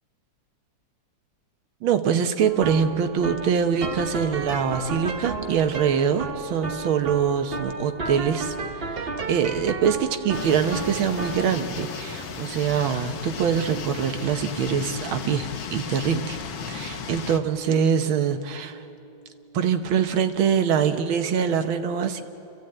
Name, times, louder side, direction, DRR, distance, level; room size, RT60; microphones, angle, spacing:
voice 1, 1.8-8.6 8.8-16.4 16.7-18.8 19.5-22.2, right 7 dB, 90° right, 7 dB, 1.9 m, -24 dB
sound 1, 2.4-19.6, right 3 dB, 35° right, 1.2 m, -35 dB
sound 2, 10.3-17.4, left 6 dB, 75° left, 1.9 m, -35 dB
28.0 x 15.0 x 8.8 m, 2.9 s
omnidirectional pair, 2.2 m